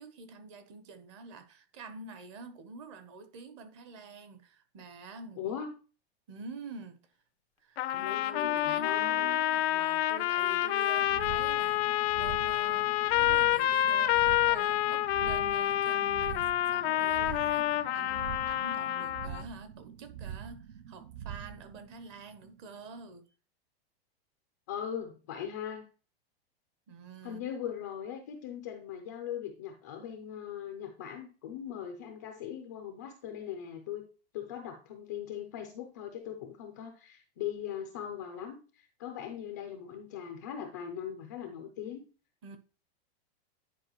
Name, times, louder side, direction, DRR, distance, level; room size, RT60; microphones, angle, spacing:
voice 1, 0.0-5.5 6.3-7.0 7.6-23.3 26.9-27.4 42.4-42.6, right 4 dB, 30° right, 0.8 m, -47 dB
voice 2, 5.4-5.7 7.9-9.3 24.7-25.9 27.2-34.0 34.3-42.1, left 9 dB, 20° left, 0.4 m, -40 dB
sound 1, 7.8-19.4, left 13 dB, 85° left, 0.6 m, -28 dB
sound 2, 11.0-22.8, right 9 dB, 55° right, 0.5 m, -45 dB
10.5 x 4.8 x 2.9 m
supercardioid pair, 180°, 31 cm